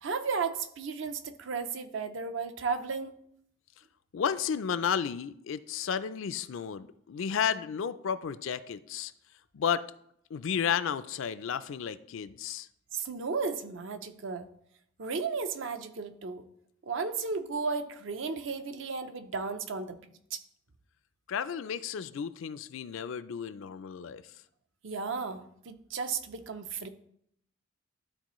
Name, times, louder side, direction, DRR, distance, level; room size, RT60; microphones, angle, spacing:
voice 1, 0.0-3.2 12.9-14.5 15.0-16.4 16.8-20.0 20.3-20.4 24.8-26.9, right 5 dB, 65° right, 9 dB, 0.6 m, -34 dB
voice 2, 4.1-9.1 9.5-9.8 10.3-12.7 21.3-24.2, left 7 dB, 70° left, 15 dB, 0.4 m, -32 dB
12.0 x 4.1 x 3.1 m, 0.71 s
head